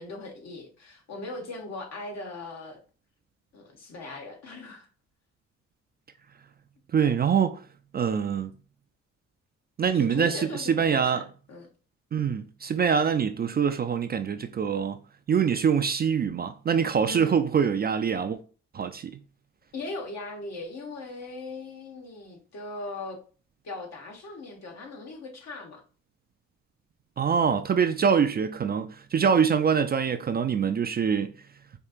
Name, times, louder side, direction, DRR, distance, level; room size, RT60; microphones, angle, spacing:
voice 1, 0.0-2.8 3.5-4.9 7.0-7.1 9.9-11.7 17.0-17.4 19.7-23.2 23.6-25.8, left 2 dB, 60° left, 1.4 m, -39 dB
voice 2, 6.9-7.6 7.9-8.5 9.8-11.2 12.1-15.0 15.3-18.4 18.7-19.2 27.2-31.3, right 7 dB, 30° right, 0.4 m, -24 dB
4.4 x 2.8 x 2.4 m
cardioid pair, 90°, 30 cm